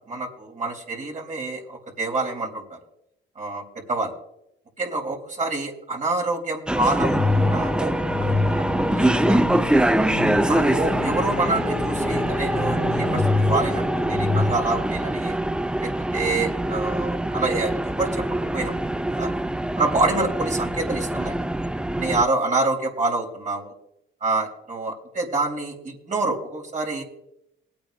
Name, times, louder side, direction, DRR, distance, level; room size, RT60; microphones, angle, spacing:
voice 1, 0.1-2.8 3.4-4.1 4.8-7.9 8.2-9.8 10.5-15.4 15.8-18.2 18.5-18.7 19.2-19.3 19.8-21.4 22.0-23.7 24.2-27.0, right 3 dB, 40° right, 0 dB, 3.7 m, -27 dB
sound 1, 6.7-22.2, right 1 dB, 5° right, 0.4 m, -24 dB
sound 2, 7.0-14.5, left 2 dB, 30° left, 1.8 m, -26 dB
22.0 x 8.7 x 2.6 m, 0.81 s
cardioid pair, 90°, 20 cm